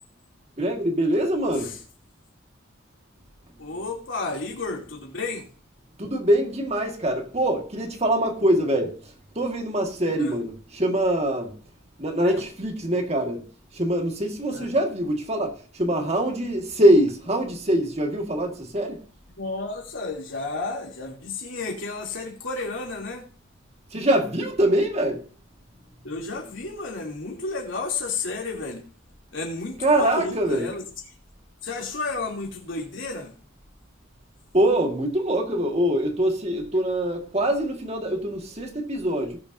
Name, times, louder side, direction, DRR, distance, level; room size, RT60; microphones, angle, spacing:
voice 1, 0.6-1.8 6.0-11.6 12.0-13.4 13.7-19.0 23.9-25.3 29.8-30.7 34.5-39.4, right 1 dB, 35° right, 1.9 m, -24 dB
voice 2, 3.6-5.5 10.1-10.4 12.2-12.4 14.5-14.7 19.4-23.2 26.0-28.8 29.3-30.8 31.6-33.3, left 3 dB, 75° left, 3.1 m, -32 dB
19.0 x 6.8 x 2.8 m
head